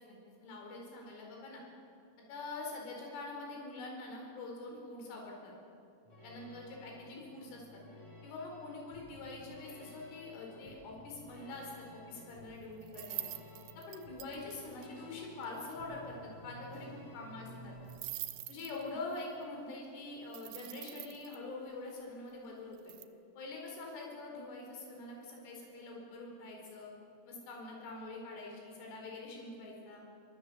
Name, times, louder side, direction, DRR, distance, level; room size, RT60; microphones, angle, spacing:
voice 1, 0.1-1.6 2.3-5.5 6.2-7.8 8.2-13.2 13.8-17.7 18.5-23.0 23.4-26.9 27.3-30.0, left 2 dB, 80° left, 0 dB, 7.1 m, -45 dB
sound 1, 6.0-17.9, left 1 dB, 30° left, 8.0 m, -54 dB
sound 2, 12.8-14.5 14.8-14.9 15.1-15.2 15.4-15.5 15.8-15.9 17.9-19.1 20.3-21.4 22.7-23.1, right 15 dB, 75° right, 2.8 m, -44 dB
28.0 x 23.0 x 7.0 m, 2.6 s
omnidirectional pair, 5.6 m